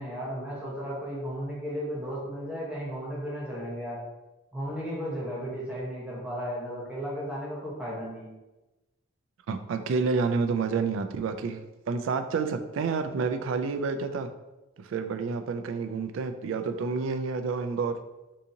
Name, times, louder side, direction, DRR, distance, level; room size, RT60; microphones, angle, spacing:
voice 1, 0.0-4.0 4.5-8.3, equal, 5° right, -6 dB, 0.8 m, -34 dB
voice 2, 9.5-11.6 11.9-14.3 14.8-18.0, right 4 dB, 75° right, 8 dB, 0.3 m, -29 dB
3.7 x 2.7 x 2.6 m, 1.1 s
head